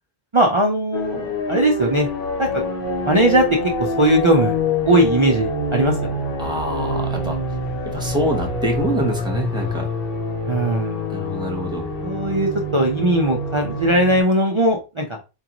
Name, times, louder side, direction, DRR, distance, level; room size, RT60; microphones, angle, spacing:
voice 1, 0.3-2.1 2.4-2.6 3.1-4.6 4.8-6.1 10.5-11.1 12.0-15.2, right 1 dB, 40° right, -1 dB, 0.5 m, -19 dB
sound 1, 0.9-14.2, left 1 dB, 60° left, 1.0 m, -26 dB
voice 2, 6.4-7.4 7.9-9.9 11.1-11.9, right 1 dB, 5° right, 1 dB, 0.9 m, -25 dB
4.6 x 2.5 x 2.9 m, 0.29 s
omnidirectional pair, 1.1 m